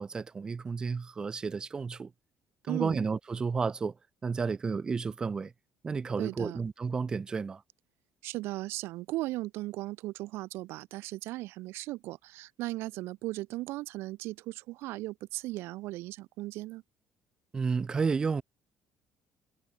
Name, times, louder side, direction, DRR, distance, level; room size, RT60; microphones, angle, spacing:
voice 1, 0.0-2.1 2.6-4.0 4.2-5.5 5.8-7.6 17.5-18.4, right 5 dB, 20° right, 0.5 m, -31 dB
voice 2, 2.7-3.0 6.2-6.6 8.2-16.8, right 18 dB, 90° right, 0.7 m, -37 dB
cardioid pair, 170°, 4 cm